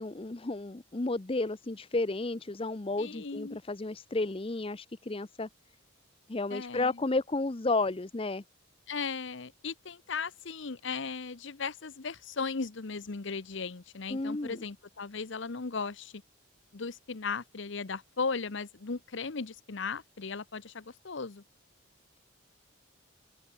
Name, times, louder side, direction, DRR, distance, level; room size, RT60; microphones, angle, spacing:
voice 1, 0.0-5.5 6.3-8.4 14.1-14.6, left 2 dB, 25° left, 0.6 m, -32 dB
voice 2, 3.0-3.6 6.5-7.0 8.9-16.2 16.7-21.4, left 4 dB, 60° left, 0.8 m, -37 dB
open air
head